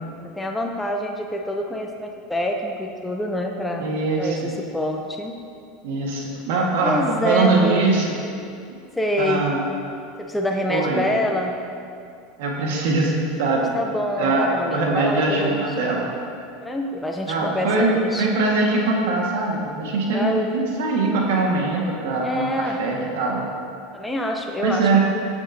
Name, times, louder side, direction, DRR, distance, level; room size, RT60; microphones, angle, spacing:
voice 1, 0.2-3.9 4.2-5.4 6.8-8.0 8.9-9.5 10.2-11.6 13.7-15.7 16.6-18.3 20.1-20.5 22.2-22.8 23.9-25.0, left 1 dB, 5° left, 1 dB, 0.7 m, -26 dB
voice 2, 3.8-4.5 5.8-8.2 9.2-9.6 10.7-11.1 12.4-13.8 14.2-16.1 17.3-17.9 18.2-23.5 24.6-25.0, right 3 dB, 75° right, -1 dB, 1.7 m, -22 dB
14.0 x 7.2 x 2.8 m, 2.4 s
supercardioid pair, 120°, 0 cm